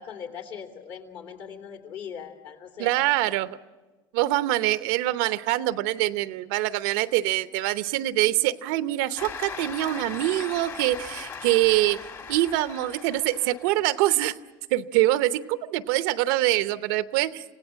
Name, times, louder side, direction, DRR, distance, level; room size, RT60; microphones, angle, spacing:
voice 1, 0.0-2.9, left 7 dB, 60° left, 3 dB, 3.1 m, -40 dB
voice 2, 2.8-3.6 4.1-12.0 12.3-14.3 14.7-17.4, right 16 dB, 80° right, 13 dB, 0.8 m, -24 dB
Cheering / Applause, 9.2-14.1, left 5 dB, 35° left, 1.8 m, -39 dB
28.0 x 17.0 x 7.5 m, 1.2 s
cardioid pair, 130°, 10 cm